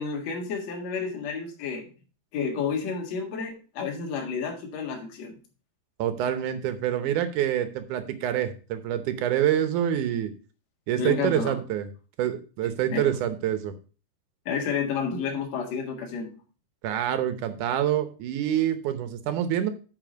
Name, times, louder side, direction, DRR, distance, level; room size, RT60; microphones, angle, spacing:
voice 1, 0.0-1.9 2.3-5.3 11.0-11.6 12.9-13.1 14.5-16.3, left 6 dB, 50° left, 1 dB, 2.6 m, -30 dB
voice 2, 6.0-10.3 10.9-11.9 12.2-13.7 16.8-19.7, right 10 dB, 70° right, 10 dB, 2.0 m, -26 dB
9.5 x 5.0 x 5.1 m, 0.36 s
omnidirectional pair, 4.4 m